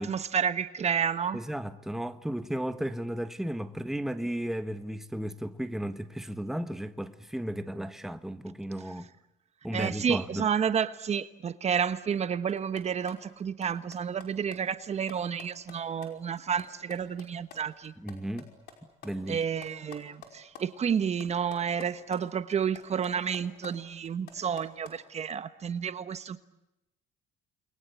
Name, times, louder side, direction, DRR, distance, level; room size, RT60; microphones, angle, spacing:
voice 1, 0.0-1.4 9.7-17.9 19.3-26.4, right 7 dB, 40° right, 1.2 m, -30 dB
voice 2, 1.3-9.1 9.6-10.5 18.0-18.5 19.0-19.4, right 1 dB, ahead, 1.4 m, -34 dB
sound 1, 12.5-17.6 17.8-20.6 20.9-22.2 22.5-25.0, left 7 dB, 75° left, 5.4 m, -50 dB
29.5 x 22.5 x 8.4 m
cardioid pair, 110°, 17 cm